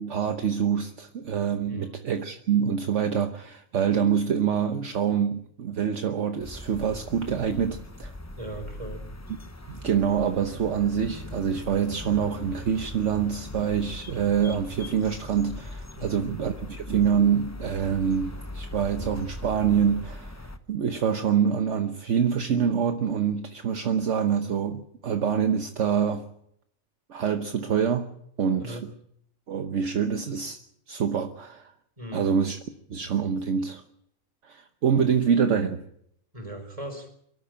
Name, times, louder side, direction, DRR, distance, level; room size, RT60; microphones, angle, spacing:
voice 1, 0.0-8.1 9.7-26.3 27.1-28.1 28.4-28.8 29.5-30.6 30.9-31.7 32.1-32.6 32.9-33.8 34.5-35.8, right 7 dB, 60° right, 1.3 m, -26 dB
voice 2, 1.7-2.0 8.3-9.0 15.9-16.3 28.6-28.8 32.0-32.3 36.3-37.1, right 1 dB, 25° right, 4.3 m, -38 dB
sound 1, 6.4-20.6, left 1 dB, 15° left, 0.9 m, -40 dB
23.0 x 13.5 x 8.8 m
omnidirectional pair, 1.4 m